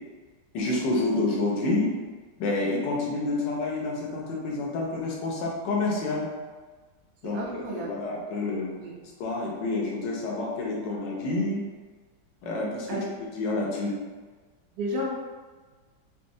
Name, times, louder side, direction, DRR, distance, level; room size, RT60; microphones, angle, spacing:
voice 1, 0.5-1.9 2.4-6.3 7.2-8.8 9.2-11.6 12.4-13.0 13.4-13.9, left 2 dB, 70° left, -2 dB, 1.3 m, -28 dB
voice 2, 7.2-8.0 8.8-8.9 12.9-13.0 14.7-15.1, equal, 70° right, -3 dB, 1.3 m, -32 dB
4.1 x 2.1 x 2.6 m, 1.4 s
omnidirectional pair, 2.1 m